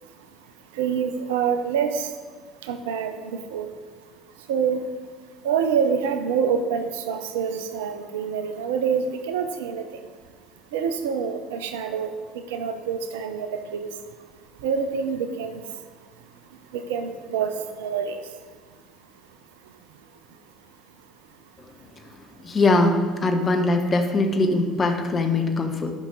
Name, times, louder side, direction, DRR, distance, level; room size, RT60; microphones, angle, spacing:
voice 1, 0.8-2.1 2.7-3.1 3.5-3.7 4.5-4.8 5.4-9.8 10.7-12.1 12.5-13.9 14.6-15.6 16.7-17.5 17.8-18.2, right 7 dB, 70° right, 8 dB, 0.6 m, -26 dB
voice 2, 22.4-25.9, left 2 dB, 30° left, 4 dB, 1.2 m, -21 dB
11.0 x 5.6 x 3.9 m, 1.5 s
figure-of-eight pair, 60°, 0 cm